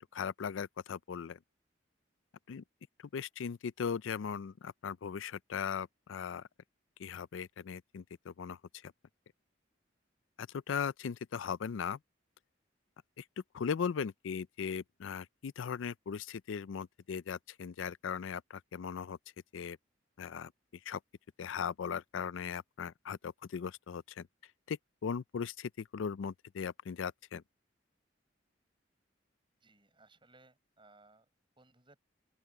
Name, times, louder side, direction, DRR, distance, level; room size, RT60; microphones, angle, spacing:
voice 1, 0.1-1.4 2.5-2.6 3.1-6.5 7.0-8.9 10.4-12.0 13.2-13.3 13.5-19.2 19.5-19.8 20.2-20.5 20.9-21.0 21.4-24.3 24.7-27.4, left 6 dB, 85° left, 0.4 m, -38 dB
voice 2, 29.6-32.0, right 2 dB, 25° right, 7.9 m, -63 dB
open air
head